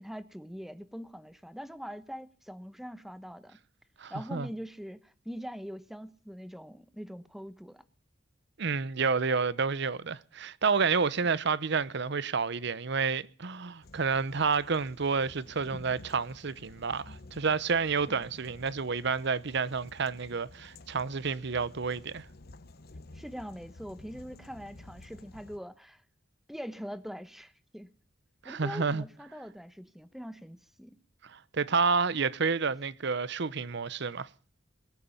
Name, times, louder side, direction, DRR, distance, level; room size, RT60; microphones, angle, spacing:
voice 1, 0.0-3.6 4.1-7.8 18.1-18.3 23.1-26.0 26.5-27.9 28.4-31.0, equal, ahead, 1.0 m, -43 dB
voice 2, 4.0-4.5 8.6-22.2 28.4-29.0 31.3-34.3, right 5 dB, 60° right, 0.8 m, -29 dB
sound 1, 13.8-25.6, left 2 dB, 55° left, 1.0 m, -52 dB
21.5 x 9.3 x 7.1 m
head